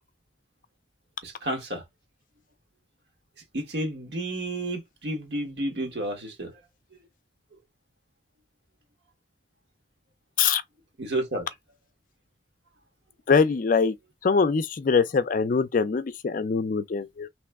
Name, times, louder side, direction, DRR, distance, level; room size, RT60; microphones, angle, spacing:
voice 1, 1.2-1.8 3.5-6.5 11.0-11.5, right 1 dB, 65° right, 1.2 m, -31 dB
voice 2, 13.3-13.9 14.2-17.3, left 5 dB, 45° left, 0.4 m, -23 dB
2.9 x 2.1 x 3.4 m
head